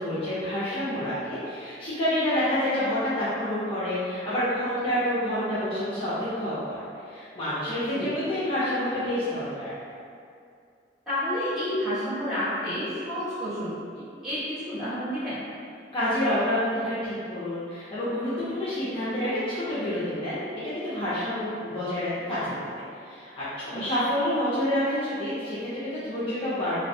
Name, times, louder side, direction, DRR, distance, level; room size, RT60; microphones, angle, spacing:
voice 1, 0.0-9.7 15.9-20.4 20.7-22.5 23.0-26.8, left 1 dB, 30° left, -13 dB, 0.5 m, -28 dB
voice 2, 11.1-15.4 23.7-23.8, equal, 5° right, -16 dB, 1.1 m, -30 dB
2.5 x 2.1 x 2.6 m, 2.4 s
head